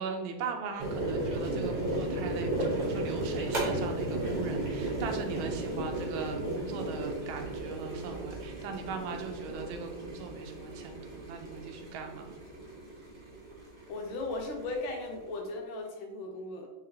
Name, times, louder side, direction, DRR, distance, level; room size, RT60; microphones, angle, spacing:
voice 1, 0.0-12.3, right 5 dB, 80° right, 4 dB, 1.4 m, -39 dB
sound 1, 0.8-15.3, right 1 dB, 35° right, 0.8 m, -35 dB
voice 2, 13.9-16.7, left 2 dB, 80° left, 1 dB, 1.6 m, -37 dB
3.9 x 3.8 x 2.7 m, 1.2 s
omnidirectional pair, 2.2 m